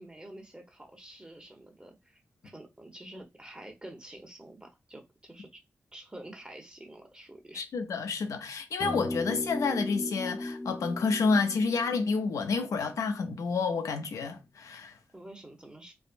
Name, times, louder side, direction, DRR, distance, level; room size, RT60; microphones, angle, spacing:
voice 1, 0.0-2.2 2.4-5.6 5.9-7.6 15.1-15.9, right 1 dB, 15° right, 0.9 m, -48 dB
voice 2, 7.5-14.9, left 4 dB, 85° left, 0.4 m, -29 dB
sound 1, 8.8-13.3, left 1 dB, 20° left, 0.5 m, -37 dB
3.3 x 2.0 x 2.5 m
cardioid pair, 50°, 5 cm